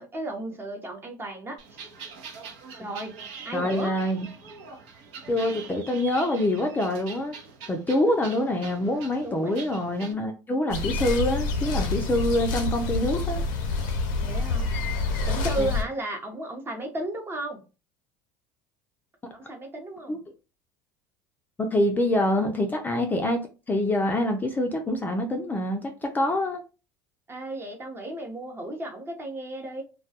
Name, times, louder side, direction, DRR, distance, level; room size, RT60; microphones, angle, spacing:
voice 1, 0.0-1.8 2.8-3.1 3.4-4.0 9.2-9.8 14.2-14.7 15.2-17.6 19.3-20.2 27.3-29.8, right 1 dB, 25° right, 0.7 m, -34 dB
sound 1, 1.6-10.1, right 5 dB, 70° right, 0.7 m, -43 dB
voice 2, 3.5-4.3 5.3-7.3 7.7-13.4 15.6-15.7 20.1-20.2 21.6-26.6, left 1 dB, 20° left, 0.4 m, -25 dB
sound 2, 10.7-15.8, left 3 dB, 85° left, 0.6 m, -27 dB
2.3 x 2.2 x 2.7 m
supercardioid pair, 90°, 10 cm